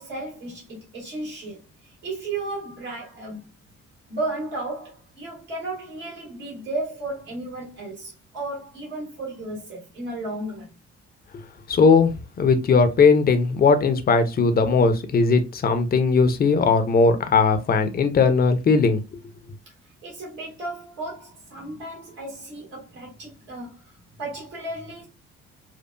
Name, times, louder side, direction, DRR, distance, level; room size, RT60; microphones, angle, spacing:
voice 1, 0.0-3.5 4.1-10.7 20.0-25.1, right 2 dB, 75° right, 1.9 m, -34 dB
voice 2, 11.7-12.1 12.4-19.0, left 4 dB, 25° left, 0.6 m, -18 dB
4.4 x 2.3 x 2.2 m
figure-of-eight pair, 45°, 35 cm